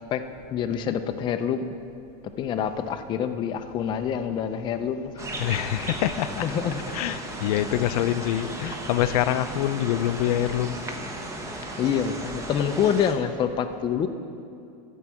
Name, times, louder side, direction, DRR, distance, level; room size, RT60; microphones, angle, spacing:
voice 1, 0.5-1.8 2.4-5.4 6.4-6.8 11.8-14.1, left 8 dB, 25° left, 7 dB, 0.4 m, -26 dB
sound 1, 5.2-13.1, right 1 dB, 15° right, 0.9 m, -35 dB
voice 2, 5.4-6.5 6.9-10.8, left 12 dB, 80° left, 12 dB, 0.5 m, -25 dB
13.0 x 4.6 x 7.2 m, 2.5 s
supercardioid pair, 150°, 19 cm